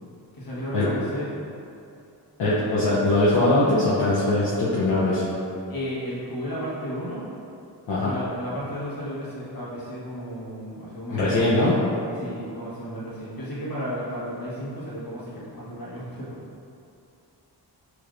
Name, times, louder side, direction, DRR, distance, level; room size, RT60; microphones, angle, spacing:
voice 1, 0.3-1.3 5.7-7.3 8.0-11.3 12.2-16.4, equal, 50° left, -8 dB, 1.4 m, -33 dB
voice 2, 2.4-5.3 7.9-8.1 11.1-11.8, left 2 dB, 75° left, -9 dB, 0.8 m, -21 dB
6.3 x 3.2 x 2.6 m, 2.6 s
wide cardioid pair, 115°, 43 cm